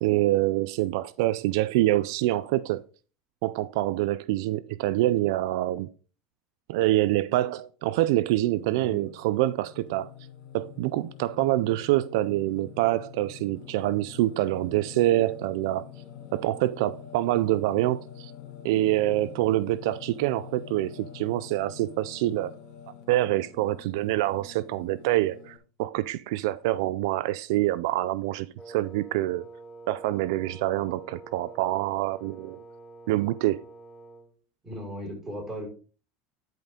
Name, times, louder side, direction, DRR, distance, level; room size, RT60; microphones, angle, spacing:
voice 1, 0.0-2.8 3.4-5.9 6.7-10.1 10.5-15.9 16.3-18.3 18.6-22.6 23.1-29.5 29.9-32.6 33.1-33.6, right 16 dB, 75° right, 0.3 m, -26 dB
Singing, 8.4-25.6, left 10 dB, 60° left, 2.2 m, -46 dB
voice 2, 8.7-9.1 34.6-35.7, equal, 15° right, 5.0 m, -37 dB
Wind instrument woodwind instrument, 28.6-34.4, right 3 dB, 15° left, 1.3 m, -47 dB
10.5 x 5.2 x 3.6 m
supercardioid pair, 125°, 2 cm